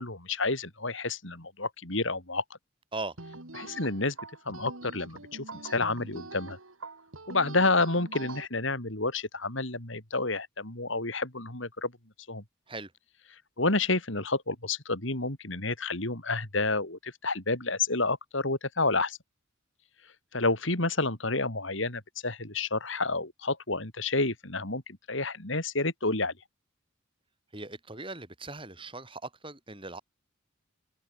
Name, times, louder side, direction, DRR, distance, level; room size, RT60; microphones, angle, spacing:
voice 1, 0.0-2.4 3.5-4.1 4.4-6.6 7.3-11.9 12.3-12.4 13.6-19.2 20.3-26.3, left 3 dB, 65° left, 4.6 m, -29 dB
sound 1, 3.2-8.5, right 3 dB, 80° right, 3.1 m, -44 dB
voice 2, 27.5-30.0, right 3 dB, 25° right, 7.6 m, -39 dB
head